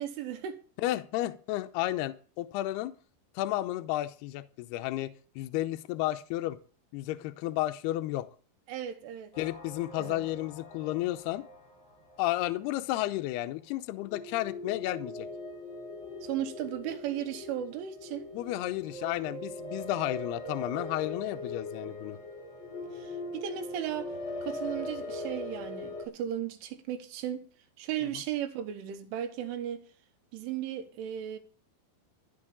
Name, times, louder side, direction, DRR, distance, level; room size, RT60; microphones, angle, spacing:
voice 1, 0.0-0.6 8.7-9.3 10.0-10.2 16.2-18.3 22.9-24.1 24.4-27.4 27.8-29.8 30.3-31.4, right 11 dB, 80° right, 3.7 m, -36 dB
voice 2, 0.8-2.9 3.4-6.6 6.9-8.3 9.4-11.4 12.2-15.3 18.3-22.2 28.0-28.1, left 16 dB, 85° left, 2.3 m, -32 dB
sound 1, 9.3-12.8 14.0-26.1, left 1 dB, 25° left, 4.6 m, -41 dB
15.0 x 5.7 x 8.7 m
omnidirectional pair, 5.6 m